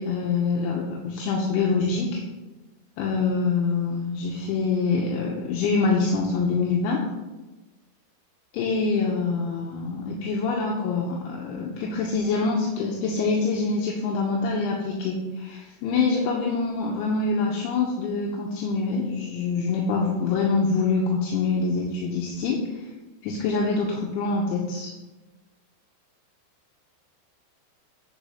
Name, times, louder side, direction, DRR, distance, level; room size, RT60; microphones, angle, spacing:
voice 1, 0.0-2.2 3.0-7.1 8.5-22.9 23.2-24.9, left 4 dB, 80° left, -1 dB, 3.3 m, -25 dB
9.5 x 5.1 x 5.6 m, 1.1 s
omnidirectional pair, 5.5 m